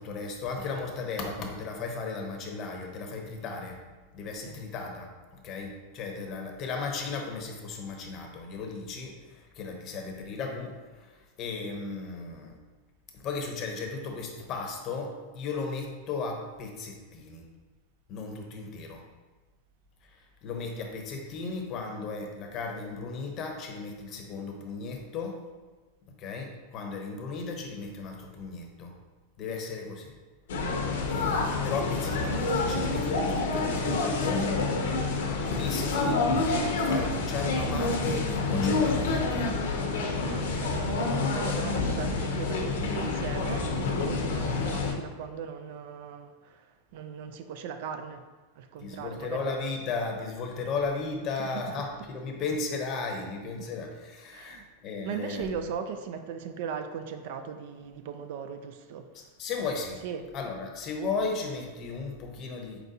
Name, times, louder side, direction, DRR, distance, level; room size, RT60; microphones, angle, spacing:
voice 1, 0.0-3.8 4.1-5.1 5.4-12.5 13.1-17.5 18.1-19.0 20.0-25.4 26.2-28.9 29.4-30.1 31.1-34.5 35.5-39.5 48.8-55.7 59.1-60.0 60.3-62.8, left 4 dB, 35° left, 2 dB, 0.7 m, -35 dB
sound 1, 30.5-44.9, left 3 dB, 80° left, 0.7 m, -28 dB
voice 2, 40.3-46.6 46.9-48.2 48.6-49.6 51.4-51.5 53.6-53.7 54.3-54.7 55.0-59.1 60.0-60.3, right 7 dB, 60° right, 8 dB, 0.3 m, -38 dB
4.5 x 3.9 x 2.7 m, 1.3 s
supercardioid pair, 140°, 0 cm